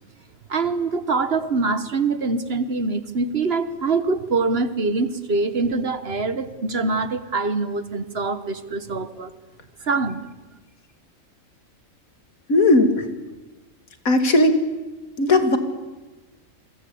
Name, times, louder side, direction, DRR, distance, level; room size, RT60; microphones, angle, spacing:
voice 1, 0.5-9.3 9.9-10.2, right 3 dB, 50° right, 12 dB, 1.4 m, -24 dB
voice 2, 12.5-13.0 14.0-14.5 15.2-15.6, left 2 dB, 90° left, 7 dB, 2.7 m, -17 dB
27.5 x 23.0 x 8.6 m, 1.2 s
omnidirectional pair, 1.4 m